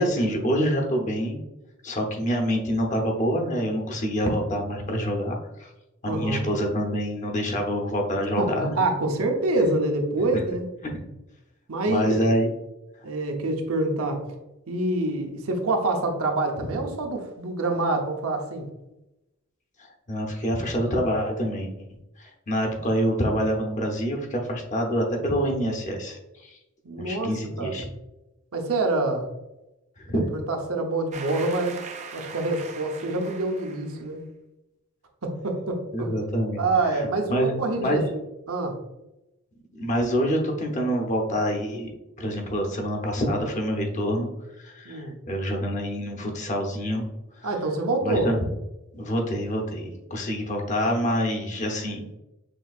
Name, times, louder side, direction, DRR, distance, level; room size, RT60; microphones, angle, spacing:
voice 1, 0.0-1.4 1.8-5.7 6.0-8.8 10.3-10.4 10.9-11.0 11.9-12.5 13.0-13.1 19.8-21.9 22.2-26.6 27.0-27.9 30.0-30.2 35.9-36.6 36.9-38.0 39.7-41.9 42.2-44.3 44.6-47.1 47.4-47.5 48.0-48.4 48.9-52.2, equal, 35° left, 1 dB, 0.7 m, -26 dB
voice 2, 6.0-6.5 8.4-10.7 11.7-12.3 13.0-14.2 14.7-18.7 26.8-27.3 27.6-27.9 28.5-29.3 30.5-31.8 32.1-34.2 35.2-36.1 36.6-38.2 38.5-38.7 44.8-45.1 47.4-48.3, right 2 dB, 85° right, 3 dB, 0.8 m, -26 dB
sound 1, 31.1-34.0, right 5 dB, 35° right, 0.4 m, -40 dB
6.3 x 2.8 x 2.4 m, 0.93 s
head